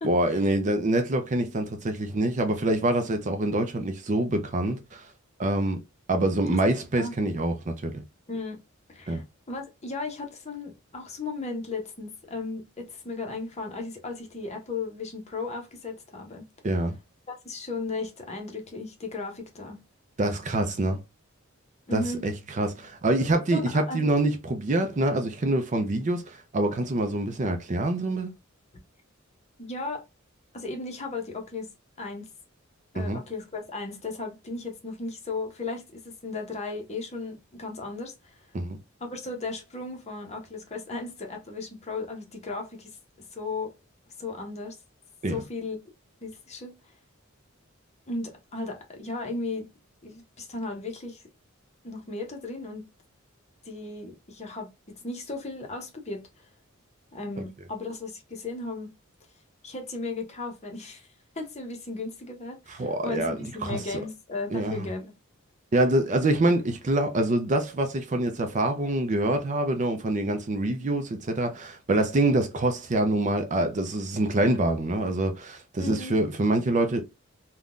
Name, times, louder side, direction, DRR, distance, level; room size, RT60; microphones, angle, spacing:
voice 1, 0.0-5.1 5.4-5.8 6.1-8.0 9.1-9.2 16.6-17.0 20.2-21.0 21.9-28.3 32.9-33.2 38.5-38.8 45.2-45.4 62.7-63.8 64.5-64.9 65.7-77.0, right 2 dB, 35° right, 0.5 m, -25 dB
voice 2, 8.3-8.6 8.9-16.5 17.3-19.8 21.9-22.2 23.5-24.1 29.6-30.0 30.5-31.7 32.0-32.3 32.9-38.4 39.0-43.0 43.3-43.7 44.2-44.8 45.3-45.8 46.2-46.8 48.1-49.7 50.0-51.2 51.8-52.9 53.7-56.5 57.1-58.9 59.6-61.1 61.4-65.1 75.8-76.2, left 3 dB, 30° left, 0.8 m, -35 dB
3.6 x 2.2 x 2.4 m
head